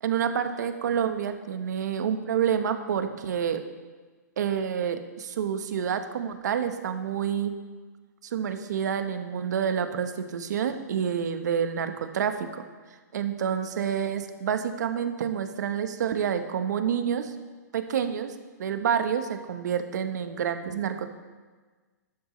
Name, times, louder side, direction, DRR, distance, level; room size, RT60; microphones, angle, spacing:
voice 1, 0.0-3.6 4.4-7.5 8.3-12.6 13.1-17.3 17.7-18.3 18.6-21.1, right 8 dB, 65° right, 8 dB, 1.2 m, -28 dB
12.5 x 11.0 x 3.2 m, 1.4 s
hypercardioid pair, 130°, 10 cm